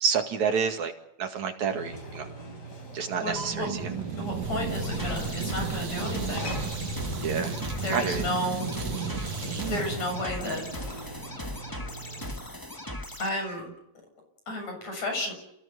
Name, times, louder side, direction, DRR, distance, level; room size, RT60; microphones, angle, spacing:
voice 1, 0.0-0.9 1.2-2.3 2.9-3.9 7.2-7.6 7.9-8.3, right 6 dB, 70° right, 5 dB, 3.4 m, -28 dB
sound 1, 1.7-12.3, right 1 dB, 30° left, 5.0 m, -41 dB
voice 2, 3.1-6.5 7.8-8.7 9.7-10.6 13.2-13.7 14.5-15.3, left 1 dB, 60° left, 4 dB, 8.6 m, -32 dB
sound 2, 3.3-11.3, right 5 dB, 90° right, 4.0 m, -34 dB
sound 3, 4.7-13.3, left 1 dB, 10° left, 1.0 m, -39 dB
29.0 x 17.0 x 8.3 m, 0.77 s
omnidirectional pair, 3.5 m